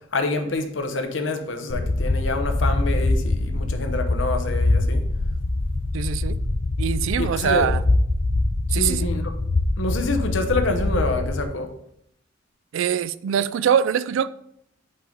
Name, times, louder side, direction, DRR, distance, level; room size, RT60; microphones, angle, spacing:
voice 1, 0.1-5.0 7.2-7.7 8.7-9.2 9.8-11.7, left 2 dB, 70° left, 0.8 m, -26 dB
sound 1, 1.7-11.5, left 2 dB, 30° left, 0.4 m, -23 dB
voice 2, 5.9-6.4 6.8-7.8 8.7-9.1 12.7-14.3, right 8 dB, 75° right, 0.3 m, -23 dB
5.5 x 3.9 x 5.0 m
head